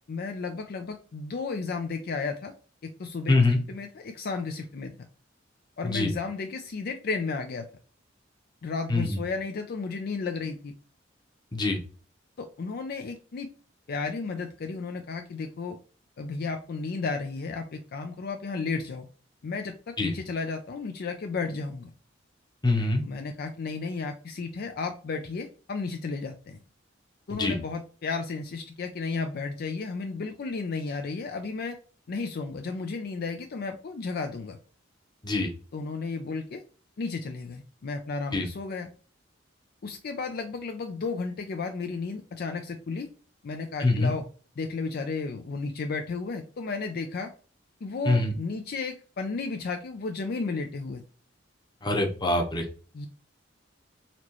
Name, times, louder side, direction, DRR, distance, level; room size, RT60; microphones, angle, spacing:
voice 1, 0.1-2.5 2.8-3.4 3.7-4.9 5.8-7.7 8.6-10.7 12.4-13.5 13.9-15.8 16.2-19.1 19.4-21.9 23.0-26.6 27.3-31.8 32.1-34.6 35.7-36.6 37.0-38.9 39.8-43.1 43.4-44.2 44.6-47.3 47.8-51.0 52.9-53.1, left 4 dB, 55° left, 6 dB, 0.4 m, -33 dB
voice 2, 3.3-3.6 5.8-6.1 8.9-9.2 11.5-11.8 20.0-20.1 22.6-23.0 27.3-27.6 35.2-35.5 38.3-38.4 43.8-44.1 48.1-48.3 51.8-52.7, left 2 dB, 25° left, 2 dB, 0.9 m, -24 dB
4.2 x 3.0 x 2.9 m, 0.38 s
head